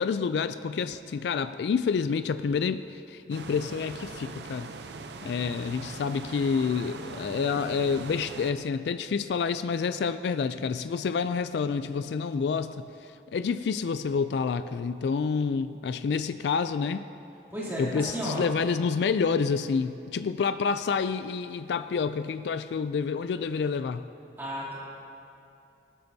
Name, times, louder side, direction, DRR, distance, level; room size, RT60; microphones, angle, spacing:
voice 1, 0.0-4.7 5.2-17.1 17.8-24.1, left 5 dB, 80° left, 12 dB, 0.3 m, -28 dB
sound 1, 3.3-8.5, right 3 dB, 80° right, 0.6 m, -41 dB
voice 2, 17.5-18.4 24.4-24.8, equal, 15° right, -9 dB, 2.9 m, -33 dB
18.5 x 13.0 x 2.7 m, 2.7 s
head